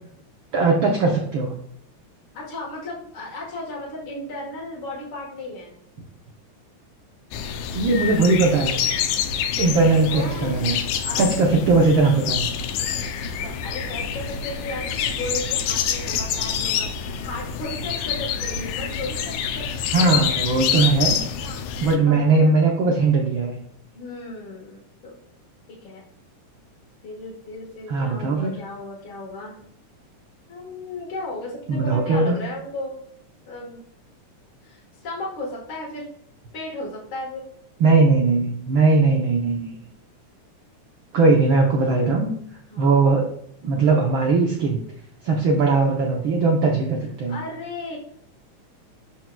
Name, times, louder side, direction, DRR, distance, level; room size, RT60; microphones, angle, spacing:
voice 1, 0.5-1.5 7.7-8.8 9.6-12.5 19.9-21.2 21.8-23.6 27.9-28.5 31.7-32.4 37.8-39.7 41.1-42.3 42.8-43.3 43.6-44.8 45.2-47.4, right 3 dB, 85° right, 1 dB, 1.1 m, -19 dB
voice 2, 2.3-5.7 10.1-10.7 11.0-11.3 12.9-19.7 20.0-20.1 21.4-22.5 23.9-25.1 25.7-26.0 27.0-29.6 30.5-33.0 33.5-33.8 34.6-36.1 36.5-37.5 42.7-43.0 47.3-48.0, left 1 dB, 50° left, -5 dB, 2.0 m, -35 dB
sound 1, 7.3-22.0, left 8 dB, 80° left, 2.1 m, -27 dB
12.0 x 4.6 x 2.2 m, 0.68 s
omnidirectional pair, 3.5 m